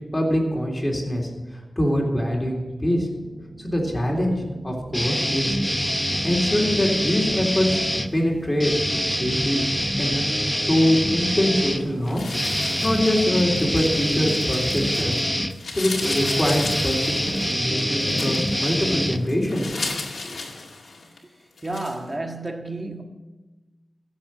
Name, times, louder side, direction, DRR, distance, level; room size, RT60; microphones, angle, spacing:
voice 1, 0.1-1.3 1.8-3.1 3.6-5.6 6.2-7.8 8.1-8.7 9.2-9.6 10.0-10.2 10.7-12.3 12.8-15.2 15.7-19.7 20.2-20.3, equal, 20° left, 3.5 m, -23 dB
sound 1, 3.1-14.7, right 3 dB, 60° right, 0.8 m, -40 dB
sound 2, 4.9-8.1 8.6-19.7, equal, 5° left, 0.7 m, -25 dB
sound 3, 12.0-15.2 15.5-21.2 21.6-22.0, left 3 dB, 85° left, 2.1 m, -34 dB
voice 2, 21.6-23.0, right 2 dB, 30° right, 1.6 m, -31 dB
16.5 x 7.5 x 7.6 m
wide cardioid pair, 95°, 0 cm